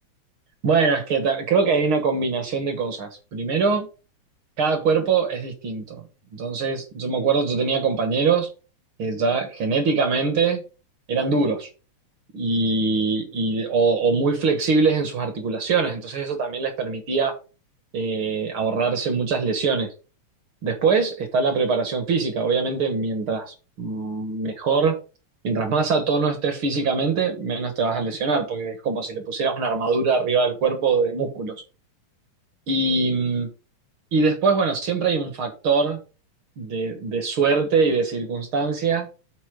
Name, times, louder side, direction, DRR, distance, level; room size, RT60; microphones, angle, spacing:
voice 1, 0.6-3.9 4.6-6.0 6.3-8.5 9.0-10.6 11.1-11.7 12.3-17.3 17.9-19.9 20.6-24.9 25.4-31.6 32.7-33.5 34.1-36.0 36.6-39.1, right 4 dB, 50° right, 6 dB, 2.1 m, -23 dB
8.4 x 5.4 x 5.2 m, 0.33 s
omnidirectional pair, 3.3 m